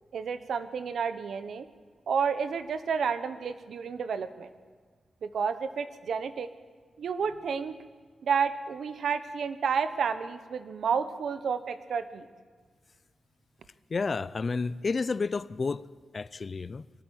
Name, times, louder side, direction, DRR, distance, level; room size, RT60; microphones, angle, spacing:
voice 1, 0.1-1.7 2.1-4.5 5.2-6.5 7.0-7.8 8.2-12.3, right 6 dB, 75° right, 11 dB, 1.1 m, -30 dB
voice 2, 13.9-15.9 16.1-16.9, left 4 dB, 35° left, 18 dB, 0.5 m, -30 dB
22.0 x 14.0 x 8.8 m, 1.5 s
wide cardioid pair, 135°, 0 cm